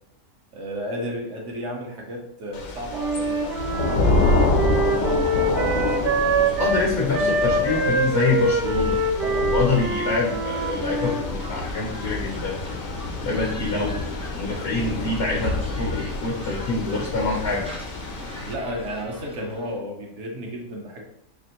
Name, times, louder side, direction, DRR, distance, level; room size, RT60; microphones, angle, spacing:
voice 1, 0.5-3.6 4.0-5.8 6.1-8.1 9.2-9.5 18.4-21.0, equal, 60° right, 0 dB, 1.0 m, -34 dB
Thunder / Rain, 2.5-18.5, left 2 dB, 70° left, 1.1 m, -27 dB
Wind instrument woodwind instrument, 2.9-11.2, right 2 dB, 80° right, 0.4 m, -24 dB
voice 2, 6.6-9.0 9.5-12.6 13.2-17.7, left 3 dB, 55° left, -1 dB, 0.7 m, -25 dB
sound 1, 10.5-19.8, left 1 dB, 10° right, 0.3 m, -39 dB
4.2 x 3.0 x 2.9 m, 0.74 s
omnidirectional pair, 1.5 m